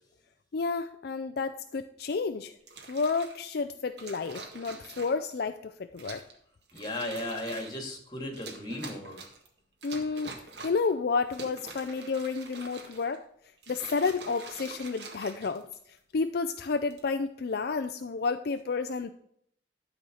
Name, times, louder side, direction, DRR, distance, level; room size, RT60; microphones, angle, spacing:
voice 1, 0.5-2.5 2.9-6.2 9.8-10.3 10.6-13.2 13.7-19.1, left 4 dB, 60° left, 8 dB, 0.4 m, -31 dB
sound 1, 2.6-3.4 4.0-5.3 6.0-6.4 6.7-7.8 8.3-9.5 9.8-10.9 11.3-13.2 13.6-16.0 16.7-17.1, right 4 dB, 65° right, 1.7 m, -45 dB
voice 2, 6.7-9.2, left 1 dB, 25° left, 3 dB, 2.3 m, -36 dB
12.0 x 4.3 x 6.3 m, 0.68 s
head